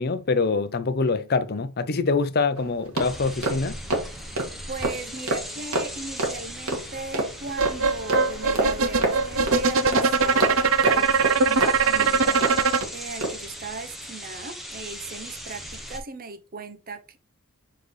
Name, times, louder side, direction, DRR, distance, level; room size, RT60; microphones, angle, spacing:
voice 1, 0.0-3.8, left 4 dB, 45° left, 0.6 m, -24 dB
sound 1, 2.6-12.9 13.2-13.4, right 2 dB, 85° right, 1.8 m, -29 dB
sound 2, 3.0-16.0, equal, ahead, 0.9 m, -39 dB
voice 2, 4.7-17.2, right 3 dB, 40° right, 0.8 m, -38 dB
sound 3, 7.6-12.8, right 4 dB, 65° right, 0.5 m, -21 dB
7.5 x 3.9 x 3.2 m
head